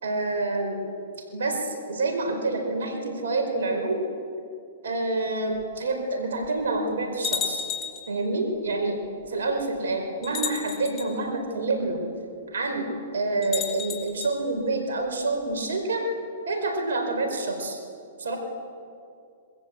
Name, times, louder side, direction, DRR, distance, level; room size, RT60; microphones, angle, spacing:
voice 1, 0.0-0.8 1.3-4.0 4.8-7.7 8.1-9.0 9.3-12.0 12.5-16.0 16.5-17.8 18.2-18.4, right 2 dB, 80° right, 3 dB, 4.7 m, -27 dB
sound 1, 5.6-5.7 6.4-6.5 7.2-8.1 9.2-9.3 10.2-11.1 13.4-14.3, left 8 dB, 30° left, 4.9 m, -32 dB
27.0 x 21.5 x 8.3 m, 2.5 s
hypercardioid pair, 130°, 0 cm